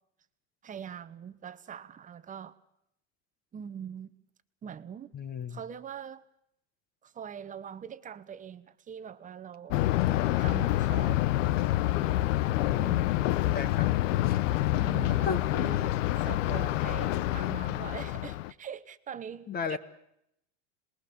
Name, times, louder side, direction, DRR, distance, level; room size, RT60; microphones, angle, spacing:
voice 1, 0.6-2.6 3.5-4.1 4.6-5.1 5.5-6.2 7.0-9.8 10.4-11.2 12.8-13.2 14.7-19.8, right 8 dB, 20° right, 1.1 m, -43 dB
voice 2, 5.1-5.6 10.0-10.3 12.6-13.1 13.5-13.9 14.3-14.4 15.2-15.4 19.5-19.8, left 5 dB, 25° left, 1.4 m, -35 dB
Thunder, 9.7-18.5, left 15 dB, 85° left, 0.8 m, -27 dB
27.0 x 20.5 x 7.1 m
supercardioid pair, 140°, 37 cm